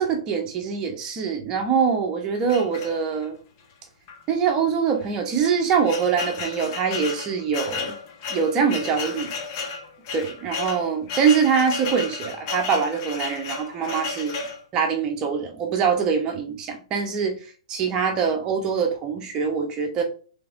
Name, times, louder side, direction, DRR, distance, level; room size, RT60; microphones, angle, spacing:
voice 1, 0.0-3.4 4.3-7.9 8.3-9.3 10.1-14.4 14.7-17.3 17.7-20.0, right 6 dB, 25° right, 3 dB, 0.9 m, -24 dB
sound 1, 2.5-3.4 4.1-4.2 4.5-4.6 5.3-14.6, left 5 dB, 40° left, 0.9 m, -33 dB
3.5 x 3.3 x 3.6 m, 0.38 s
hypercardioid pair, 145°, 3 cm